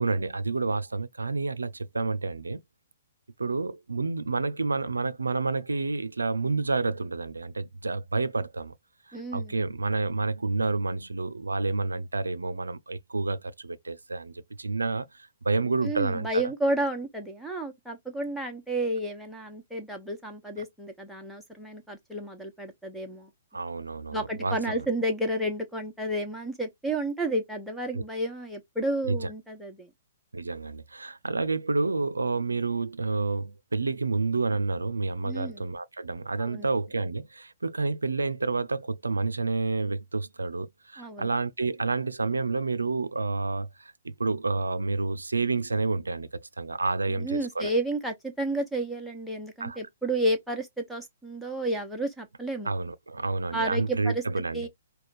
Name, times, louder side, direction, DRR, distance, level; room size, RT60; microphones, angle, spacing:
voice 1, 0.0-2.6 3.4-8.7 9.1-14.3 14.6-16.4 23.5-24.9 27.9-28.0 29.0-29.3 30.3-47.7 49.6-49.8 52.6-54.7, right 3 dB, 80° right, 0.5 m, -29 dB
voice 2, 9.1-9.5 15.8-23.3 24.1-29.9 35.2-35.7 36.4-36.7 41.0-41.3 47.1-52.7 53.5-54.2 54.5-54.7, right 1 dB, ahead, 1.1 m, -31 dB
4.9 x 2.3 x 4.1 m
figure-of-eight pair, 120°, 0 cm